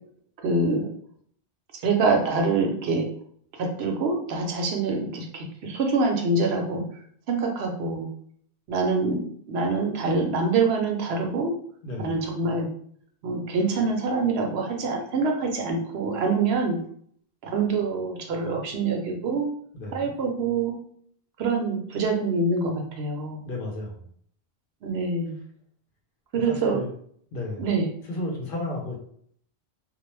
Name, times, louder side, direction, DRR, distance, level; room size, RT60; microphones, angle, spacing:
voice 1, 0.4-0.9 1.8-3.1 3.6-6.8 7.3-8.1 8.7-11.5 12.0-12.7 13.2-16.8 17.4-19.5 19.9-20.7 21.4-23.4 24.8-25.4 26.3-26.8 27.6-27.9, right 3 dB, 75° right, 2 dB, 0.8 m, -25 dB
voice 2, 19.7-20.1 23.4-24.1 26.5-26.9 27.3-27.6 28.0-29.0, left 2 dB, 60° left, 0 dB, 0.8 m, -33 dB
2.3 x 2.0 x 3.1 m, 0.62 s
omnidirectional pair, 1.1 m